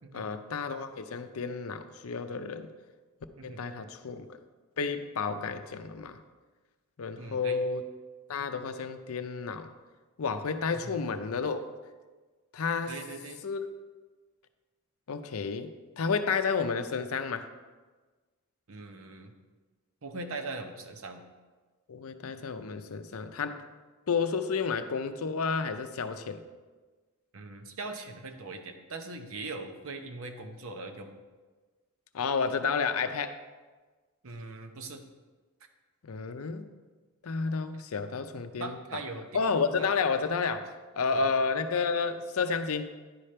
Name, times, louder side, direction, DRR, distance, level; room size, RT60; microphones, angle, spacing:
voice 1, 0.1-2.7 3.4-4.4 4.8-6.2 7.0-7.9 8.3-9.7 10.2-11.7 12.5-13.0 13.4-13.6 15.1-17.5 21.9-23.6 24.1-26.4 32.1-33.4 36.0-36.7 37.2-38.8 39.3-42.9, left 5 dB, 70° left, 9 dB, 0.6 m, -31 dB
voice 2, 3.4-3.9 7.2-7.6 10.7-10.9 12.9-13.4 18.7-19.3 20.0-21.2 27.3-31.2 34.2-35.0 38.6-39.4 39.8-39.9 41.1-41.3, right 3 dB, 65° right, 5 dB, 0.8 m, -41 dB
10.5 x 5.0 x 4.3 m, 1.3 s
head